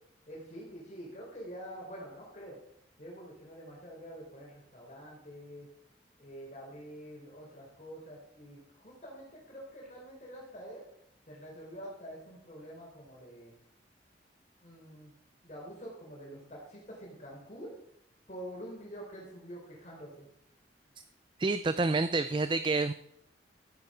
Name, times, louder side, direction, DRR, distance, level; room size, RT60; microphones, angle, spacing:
voice 1, 0.3-2.6 3.0-5.7 6.2-10.8 11.3-13.5 14.6-15.1 15.4-17.7 18.3-20.2, equal, 40° left, -3 dB, 4.2 m, -46 dB
voice 2, 21.4-22.9, right 3 dB, 30° right, 12 dB, 0.4 m, -28 dB
14.5 x 9.9 x 5.1 m, 0.74 s
head